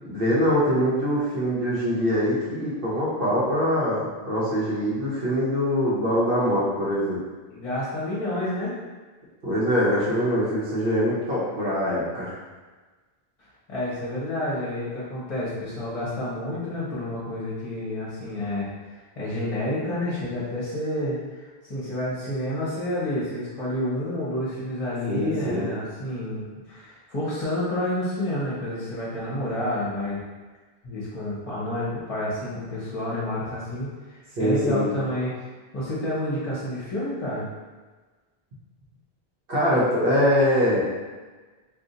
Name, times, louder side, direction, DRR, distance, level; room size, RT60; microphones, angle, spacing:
voice 1, 0.0-7.2 9.4-12.3 25.1-25.7 34.4-34.9 39.5-40.8, equal, 65° right, -8 dB, 0.9 m, -23 dB
voice 2, 7.5-8.8 13.4-30.2 30.8-35.5 35.7-37.5, left 1 dB, 35° left, -8 dB, 0.8 m, -29 dB
2.5 x 2.4 x 3.9 m, 1.3 s
omnidirectional pair, 1.0 m